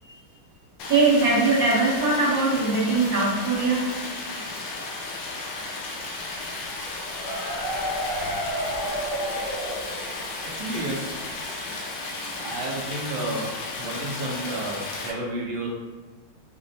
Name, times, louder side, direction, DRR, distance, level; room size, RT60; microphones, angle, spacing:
Stream, 0.8-15.1, left 2 dB, 80° left, 1.4 m, -34 dB
voice 1, 0.8-3.8, right 3 dB, 50° right, -7 dB, 1.4 m, -21 dB
sound 1, 6.8-10.5 10.8-10.9 11.2-11.3, equal, 55° left, 0.9 m, -31 dB
voice 2, 10.4-11.2 12.4-15.7, right 1 dB, 70° right, -2 dB, 1.4 m, -31 dB
5.1 x 2.0 x 2.6 m, 1.3 s
omnidirectional pair, 2.2 m